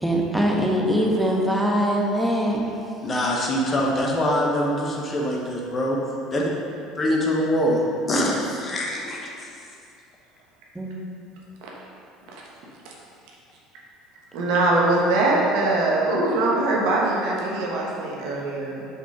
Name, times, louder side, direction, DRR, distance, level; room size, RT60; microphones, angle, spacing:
voice 1, 0.0-2.9 10.7-10.9, equal, 5° right, -1 dB, 1.2 m, -22 dB
voice 2, 3.0-6.0 6.3-6.4 7.0-7.8 8.1-9.3, equal, 30° left, -3 dB, 1.2 m, -23 dB
voice 3, 14.3-18.9, right 2 dB, 65° right, -3 dB, 1.3 m, -22 dB
5.2 x 5.1 x 5.1 m, 2.6 s
figure-of-eight pair, 65°, 0 cm